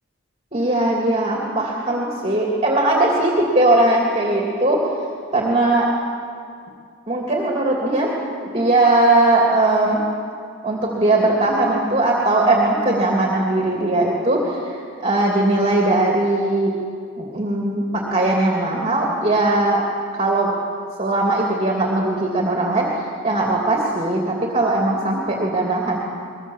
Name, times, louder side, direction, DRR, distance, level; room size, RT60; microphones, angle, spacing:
voice 1, 0.5-4.9 5.3-5.9 7.1-8.1 8.4-10.0 10.6-14.8 15.0-16.7 17.2-19.8 20.2-20.6 21.0-26.0, right 2 dB, 30° right, -2 dB, 2.8 m, -19 dB
23.5 x 22.0 x 7.4 m, 2.3 s
head